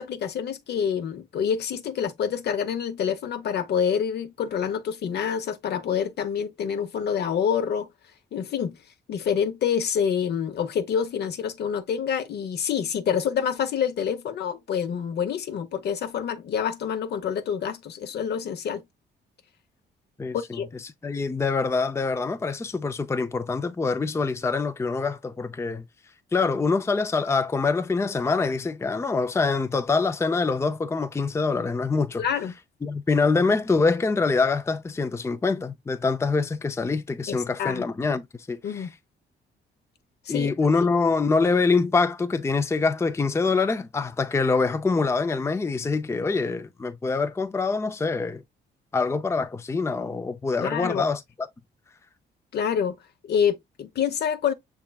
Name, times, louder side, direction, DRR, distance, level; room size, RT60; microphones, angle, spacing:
voice 1, 0.0-7.9 8.3-8.7 9.1-18.8 20.3-20.7 32.2-32.5 37.3-37.8 38.6-38.9 40.2-40.5 50.6-51.0 52.5-53.0 53.2-54.5, left 8 dB, 60° left, 0.8 m, -27 dB
voice 2, 20.2-25.8 26.3-32.2 32.8-38.9 40.3-48.4 48.9-51.2, left 4 dB, 15° left, 0.5 m, -25 dB
6.2 x 3.5 x 2.3 m
cardioid pair, 100°, 19 cm